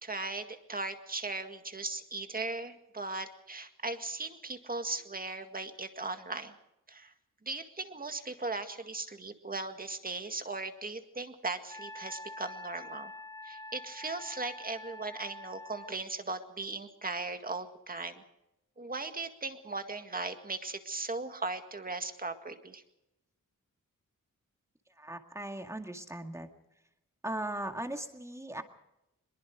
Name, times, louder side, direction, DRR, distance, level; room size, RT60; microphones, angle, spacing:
voice 1, 0.0-6.5 6.9-7.1 7.4-13.1 13.4-18.2 18.8-22.8, right 3 dB, 30° right, 7 dB, 2.0 m, -38 dB
Wind instrument woodwind instrument, 11.7-16.0, left 1 dB, 10° left, 1.7 m, -46 dB
voice 2, 25.0-26.5 27.2-28.6, right 1 dB, 10° right, 5 dB, 2.0 m, -38 dB
24.5 x 22.0 x 4.8 m, 0.88 s
wide cardioid pair, 160°, 32 cm